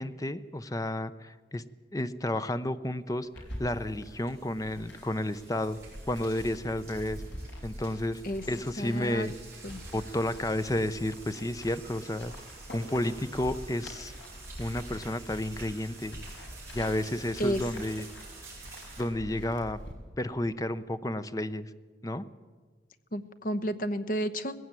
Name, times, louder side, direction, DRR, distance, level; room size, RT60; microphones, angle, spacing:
voice 1, 0.0-1.6 1.9-5.8 6.1-7.2 7.6-8.2 8.5-9.3 9.9-12.3 12.7-14.1 14.6-16.2 16.7-18.1 19.0-19.8 20.2-21.7 22.0-22.2, left 1 dB, 20° left, 12 dB, 0.6 m, -31 dB
sound 1, 3.3-19.0, right 4 dB, 15° right, 6.4 m, -50 dB
sound 2, 3.4-19.9, equal, 70° left, 4.9 m, -45 dB
voice 2, 8.8-9.3 9.6-9.8 17.4-17.6 23.1-24.5, equal, 45° left, 9 dB, 1.0 m, -31 dB
19.0 x 16.0 x 9.0 m, 1.5 s
head